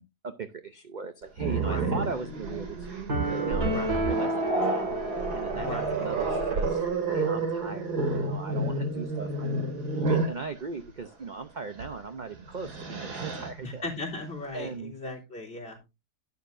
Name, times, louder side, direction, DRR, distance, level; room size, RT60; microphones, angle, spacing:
voice 1, 0.0-4.3 4.6-4.9 5.3-9.6 10.0-13.9 14.5-14.9, right 5 dB, 45° right, 9 dB, 0.6 m, -39 dB
Growling, 1.4-10.4 11.7-11.9 12.4-13.5, right 3 dB, 85° right, 2.7 m, -30 dB
voice 2, 1.5-1.9 3.6-3.9 5.5-6.1 6.4-6.6 13.6-15.8, left 2 dB, 40° left, -3 dB, 3.8 m, -37 dB
sound 1, 3.1-6.3, right 1 dB, 65° right, 2.4 m, -31 dB
11.5 x 9.6 x 2.6 m, 0.25 s
omnidirectional pair, 1.7 m